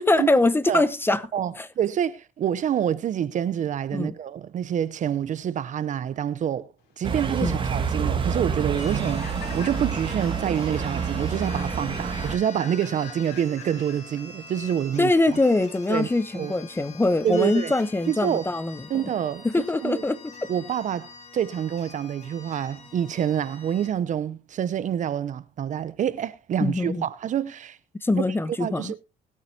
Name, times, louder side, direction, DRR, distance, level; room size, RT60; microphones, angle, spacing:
voice 1, 0.0-1.3 1.6-1.7 3.9-4.1 7.4-7.6 15.0-18.9 19.4-20.3 26.6-27.0 28.0-29.0, left 2 dB, 15° left, 0.8 m, -23 dB
voice 2, 1.3-6.7 7.0-15.4 15.9-16.1 16.3-16.5 17.2-17.7 18.1-18.4 18.9-19.5 19.8-20.0 20.5-27.8 28.2-28.3 28.6-29.0, right 9 dB, 50° right, 0.7 m, -27 dB
Human voice / Train, 6.9-15.8, left 8 dB, 80° left, 3.9 m, -47 dB
sound 1, 7.0-12.4, right 6 dB, 30° right, 2.1 m, -28 dB
sound 2, 8.7-23.9, left 5 dB, 40° left, 3.6 m, -45 dB
20.0 x 8.6 x 2.8 m
cardioid pair, 110°, 17 cm